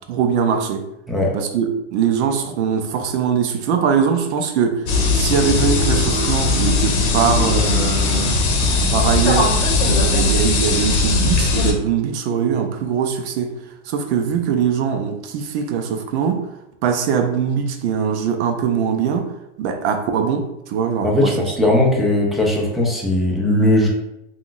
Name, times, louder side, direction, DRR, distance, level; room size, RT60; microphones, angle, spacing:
voice 1, 0.1-0.8 1.3-4.9 5.1-8.4 8.9-9.5 9.9-13.5 13.8-16.5 16.8-19.3 19.6-21.7, right 7 dB, 65° right, 5 dB, 0.6 m, -21 dB
sound 1, 4.9-11.7, left 3 dB, 65° left, 0.8 m, -18 dB
voice 2, 21.0-23.9, left 1 dB, ahead, -3 dB, 0.4 m, -18 dB
3.7 x 2.3 x 2.4 m, 0.86 s
hypercardioid pair, 125°, 37 cm